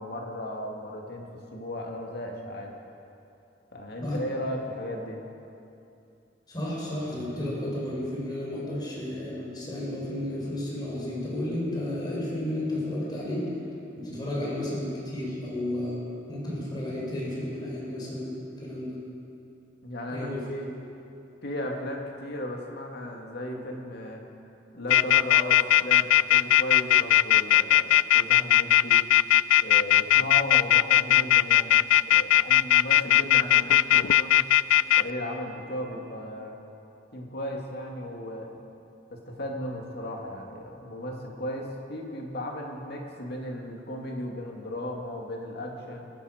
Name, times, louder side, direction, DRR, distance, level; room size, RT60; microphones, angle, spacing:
voice 1, 0.0-2.7 3.7-5.2 19.8-20.7 21.4-24.2 24.7-29.0 29.6-34.4 35.0-36.6 37.1-38.5 39.1-46.1, left 1 dB, 60° left, 0 dB, 2.1 m, -36 dB
voice 2, 6.5-13.5 14.0-16.0 16.3-19.0 20.1-20.5, left 1 dB, 25° left, -5 dB, 4.4 m, -32 dB
sound 1, 24.9-35.0, left 12 dB, 85° left, 0.3 m, -18 dB
22.0 x 10.5 x 5.0 m, 2.7 s
head